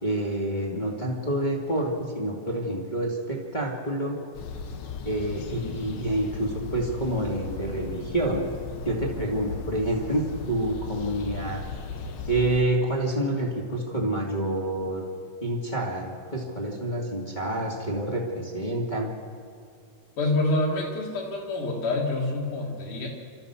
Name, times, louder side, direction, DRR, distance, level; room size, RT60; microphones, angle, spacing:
voice 1, 0.0-4.5 5.0-8.5 8.8-11.6 12.3-15.0 15.4-19.1, right 1 dB, 15° left, -3 dB, 1.9 m, -28 dB
sound 1, 4.3-12.6, left 5 dB, 85° left, 1.1 m, -36 dB
voice 2, 20.2-23.1, left 2 dB, 65° left, -1 dB, 4.3 m, -27 dB
28.5 x 13.5 x 7.0 m, 2.3 s
omnidirectional pair, 4.0 m